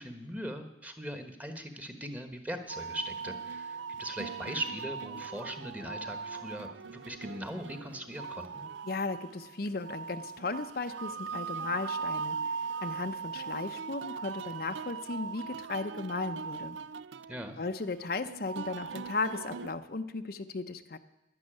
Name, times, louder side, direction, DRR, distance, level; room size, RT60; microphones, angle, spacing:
voice 1, 0.0-8.6 17.3-17.6, equal, 10° right, 7 dB, 1.2 m, -40 dB
sound 1, 2.7-19.7, right 5 dB, 85° right, 0.5 m, -40 dB
voice 2, 8.8-12.4 12.8-16.8 17.6-21.0, left 3 dB, 55° left, 8 dB, 0.7 m, -36 dB
11.5 x 10.5 x 8.9 m, 0.96 s
head